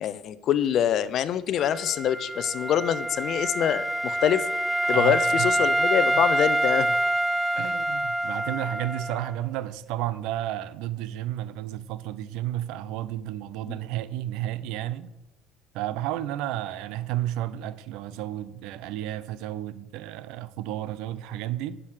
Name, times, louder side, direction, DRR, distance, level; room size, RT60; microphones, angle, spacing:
voice 1, 0.0-4.5 4.9-6.9 13.7-13.8, left 10 dB, 55° left, 16 dB, 0.6 m, -25 dB
Wind instrument woodwind instrument, 1.6-9.3, right 1 dB, 10° right, 0.4 m, -26 dB
voice 2, 4.9-5.5 6.1-6.2 7.6-15.1 15.7-21.8, right 13 dB, 70° right, 16 dB, 0.5 m, -32 dB
10.5 x 5.0 x 6.4 m, 1.0 s
hypercardioid pair, 65°, 0 cm